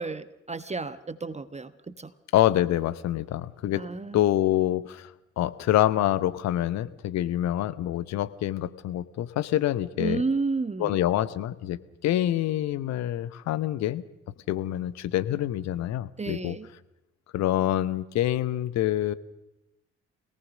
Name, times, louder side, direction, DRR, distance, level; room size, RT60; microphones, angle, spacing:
voice 1, 0.0-2.1 3.7-4.3 10.0-11.0 16.2-16.7, right 4 dB, 20° right, 13 dB, 1.1 m, -31 dB
voice 2, 2.3-3.9 4.1-10.2 10.8-14.0 14.5-16.6 17.3-19.1, left 13 dB, 55° left, 15 dB, 1.0 m, -26 dB
24.5 x 18.5 x 6.5 m, 0.95 s
figure-of-eight pair, 45°, 32 cm